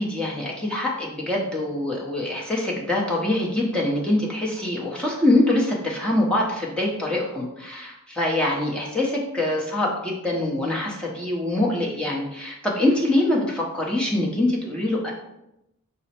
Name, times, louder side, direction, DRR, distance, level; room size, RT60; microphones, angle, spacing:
voice 1, 0.0-15.1, left 1 dB, 5° left, -4 dB, 0.7 m, -24 dB
5.0 x 2.1 x 4.2 m, 0.86 s
head